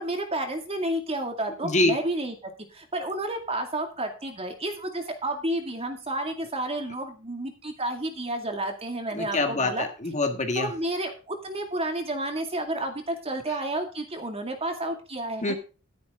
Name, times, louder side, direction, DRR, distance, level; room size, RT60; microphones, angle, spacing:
voice 1, 0.0-9.9 10.6-15.5, right 1 dB, 30° right, 5 dB, 2.2 m, -31 dB
voice 2, 1.6-1.9 9.1-10.7 15.4-15.5, left 2 dB, 35° left, 6 dB, 1.7 m, -25 dB
12.5 x 10.5 x 3.7 m, 0.34 s
head